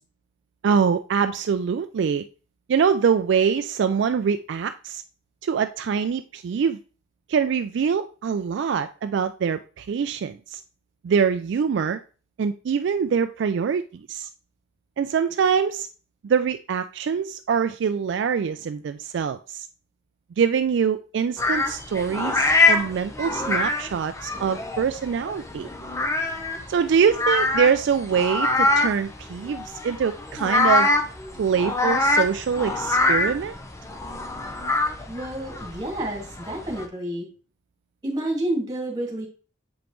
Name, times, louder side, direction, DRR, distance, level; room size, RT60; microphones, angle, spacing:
voice 1, 0.6-2.2 2.7-5.0 5.4-6.8 7.3-10.6 11.0-12.0 12.4-14.3 15.0-15.9 16.2-19.7 20.4-25.7 26.7-30.9 31.4-33.6, right 6 dB, 65° right, 9 dB, 0.3 m, -24 dB
sound 1, 21.4-36.9, left 2 dB, 15° left, 0.8 m, -24 dB
voice 2, 35.1-37.3 38.0-39.3, right 1 dB, 20° right, 0 dB, 2.3 m, -29 dB
7.1 x 5.1 x 3.0 m, 0.36 s
head